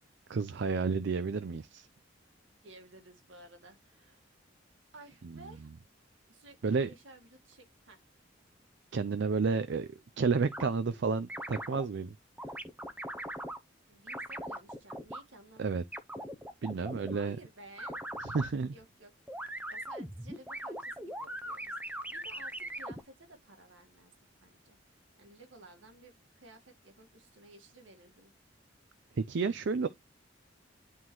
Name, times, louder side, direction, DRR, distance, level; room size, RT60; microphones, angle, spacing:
voice 1, 0.3-1.9 5.2-5.3 6.6-6.9 8.9-9.9 10.2-12.1 15.6-15.8 16.6-17.4 18.2-18.7 29.2-29.9, right 4 dB, 65° right, 0.5 m, -31 dB
voice 2, 2.6-4.3 4.9-5.7 6.3-8.0 13.9-15.7 17.1-18.0 18.7-19.1 19.4-24.1 24.4-28.3, right 2 dB, 80° right, 1.9 m, -55 dB
sound 1, 10.5-10.7 11.3-11.8 12.4-13.6 14.1-15.2 15.9-17.2 17.8-18.5 19.3-23.0, right 1 dB, 10° right, 0.7 m, -40 dB
11.0 x 3.8 x 3.0 m
head